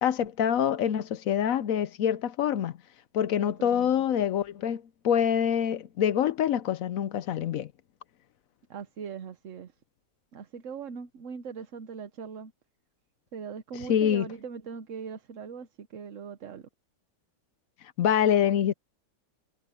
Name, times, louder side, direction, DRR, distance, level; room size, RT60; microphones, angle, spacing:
voice 1, 0.0-2.7 3.1-7.7 13.9-14.3 18.0-18.7, left 9 dB, 65° left, 0.9 m, -25 dB
voice 2, 3.4-3.9 8.7-9.7 10.3-12.5 13.3-16.7, right 6 dB, 55° right, 1.1 m, -40 dB
omnidirectional pair, 1.9 m